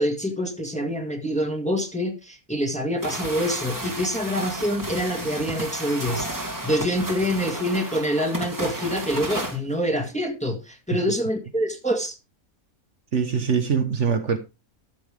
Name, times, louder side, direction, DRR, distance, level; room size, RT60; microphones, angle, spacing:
voice 1, 0.0-6.3 6.6-12.2, equal, 5° left, 1.6 m, -26 dB
sound 1, 3.0-9.6, right 1 dB, 15° right, 1.6 m, -32 dB
voice 2, 13.1-14.4, right 6 dB, 55° right, 1.3 m, -23 dB
13.5 x 6.9 x 3.4 m
omnidirectional pair, 1.5 m